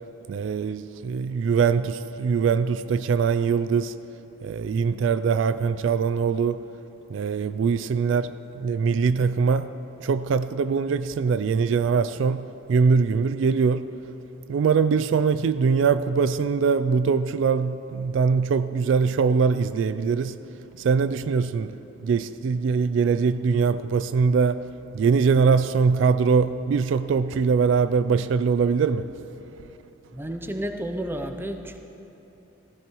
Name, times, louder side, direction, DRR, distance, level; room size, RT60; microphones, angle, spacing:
voice 1, 0.3-4.0 4.4-6.6 7.1-9.7 10.0-13.9 14.5-29.1, right 5 dB, 70° right, 0.3 m, -22 dB
voice 2, 30.1-31.8, right 1 dB, 10° right, 0.6 m, -31 dB
15.0 x 15.0 x 3.0 m
head